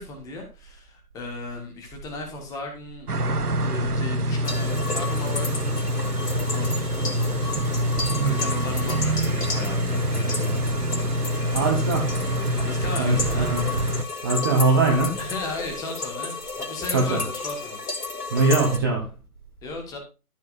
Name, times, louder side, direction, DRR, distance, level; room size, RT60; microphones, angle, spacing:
voice 1, 0.0-3.1 3.6-6.8 8.1-10.9 11.2-11.5 12.6-13.5 14.1-14.2 15.1-17.8 19.6-20.0, left 2 dB, 10° left, 1.6 m, -36 dB
sound 1, 3.1-14.0, right 1 dB, 80° right, 1.2 m, -25 dB
sound 2, 4.4-18.8, left 3 dB, 80° left, 3.0 m, -33 dB
voice 2, 11.5-12.2 13.0-13.7 14.2-15.2 16.9-17.2 18.3-19.1, right 3 dB, 15° right, 0.9 m, -22 dB
13.5 x 7.6 x 2.6 m
figure-of-eight pair, 150°, 45 cm